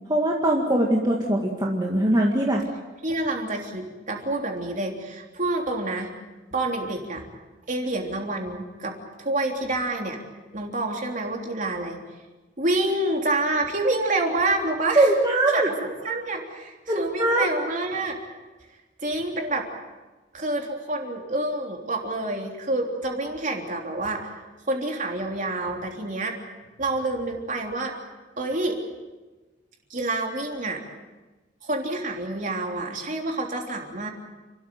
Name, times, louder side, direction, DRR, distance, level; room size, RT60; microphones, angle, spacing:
voice 1, 0.1-2.6 15.0-15.7 16.9-17.5, right 1 dB, 20° right, -1 dB, 2.0 m, -21 dB
voice 2, 3.0-6.1 6.5-7.2 7.7-10.2 10.5-12.0 12.6-15.1 15.5-18.2 19.0-19.7 20.3-24.4 24.7-26.4 26.8-28.0 28.4-28.8 29.9-30.8 31.6-34.1, right 2 dB, 40° right, 2 dB, 3.4 m, -28 dB
29.5 x 13.5 x 9.3 m, 1.2 s
head